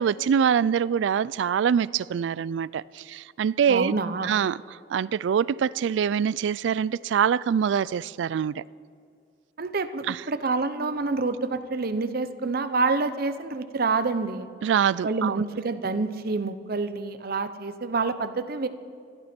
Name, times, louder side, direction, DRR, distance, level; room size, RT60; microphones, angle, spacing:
voice 1, 0.0-3.9 4.2-4.6 4.9-8.6 10.1-10.2 14.6-15.4, right 7 dB, 80° right, 0.3 m, -24 dB
voice 2, 3.7-4.3 9.6-14.5 15.0-18.7, right 3 dB, 55° right, 0.7 m, -27 dB
25.5 x 11.5 x 4.4 m
head